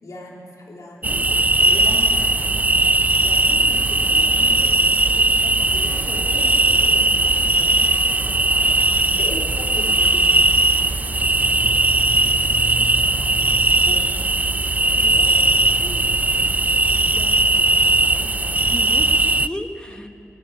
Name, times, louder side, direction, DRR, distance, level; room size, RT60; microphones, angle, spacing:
voice 1, 0.0-2.7 3.2-7.8 8.1-10.4 13.9-14.0 15.1-16.1 19.9-20.1, left 1 dB, 70° left, -2 dB, 3.5 m, -38 dB
sound 1, 1.0-19.5, right 2 dB, 25° right, 0.5 m, -18 dB
Church bell, 1.4-18.6, right 3 dB, 80° right, 2.0 m, -44 dB
voice 2, 12.7-13.6 17.1-17.6 17.9-18.4 18.7-20.1, left 1 dB, 15° left, 7 dB, 1.4 m, -36 dB
16.5 x 16.0 x 9.8 m, 2.5 s
wide cardioid pair, 75°, 6 cm